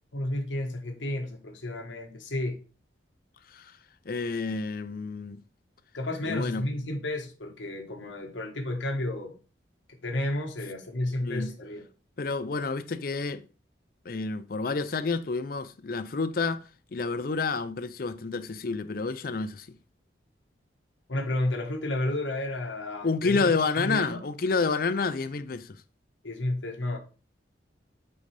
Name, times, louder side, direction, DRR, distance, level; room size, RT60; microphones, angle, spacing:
voice 1, 0.1-2.6 5.9-9.4 10.0-11.8 21.1-23.5 23.8-24.2 26.2-27.0, left 1 dB, 85° left, 1.3 m, -31 dB
voice 2, 4.1-5.4 6.2-6.7 11.2-11.6 12.2-13.4 14.1-16.6 16.9-19.8 23.0-25.8, left 4 dB, 50° left, 0.5 m, -29 dB
8.6 x 3.9 x 3.3 m
head